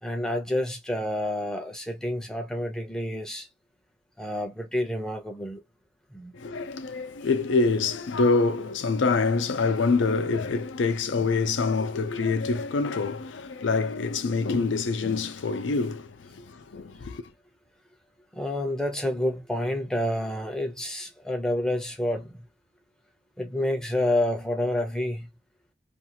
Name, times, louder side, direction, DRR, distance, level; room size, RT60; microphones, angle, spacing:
voice 1, 0.0-3.5 4.2-5.6 6.1-6.3 18.3-22.4 23.4-25.3, left 1 dB, 5° left, 0.6 m, -29 dB
voice 2, 6.4-16.0 16.7-17.2, left 4 dB, 90° left, 0.5 m, -25 dB
2.5 x 2.3 x 2.8 m
head